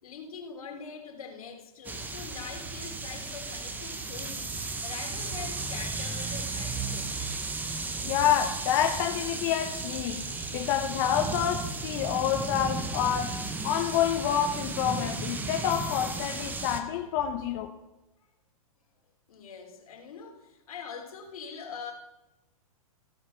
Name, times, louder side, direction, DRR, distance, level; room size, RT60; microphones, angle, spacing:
voice 1, 0.0-7.3 19.3-21.9, left 6 dB, 75° left, 3.3 m, -43 dB
sound 1, 1.8-16.8, right 3 dB, 10° right, 0.8 m, -35 dB
voice 2, 8.0-10.2 10.5-13.4 13.6-17.7, left 10 dB, 40° left, 0.9 m, -28 dB
16.0 x 5.7 x 5.7 m
hypercardioid pair, 140°, 18 cm